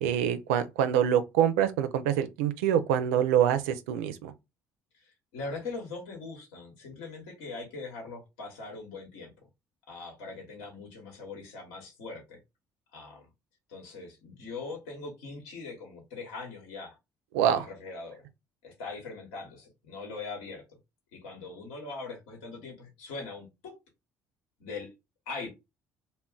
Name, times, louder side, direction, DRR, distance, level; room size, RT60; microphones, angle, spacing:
voice 1, 0.0-4.3 17.3-17.7, right 9 dB, 85° right, 0.4 m, -25 dB
voice 2, 5.0-9.3 9.9-12.4 12.9-13.3 13.7-16.9 17.4-18.2 18.6-20.6 21.1-23.8 24.6-24.9 25.3-25.5, left 3 dB, 80° left, 1.1 m, -41 dB
2.3 x 2.1 x 3.7 m
hypercardioid pair, 65°, 8 cm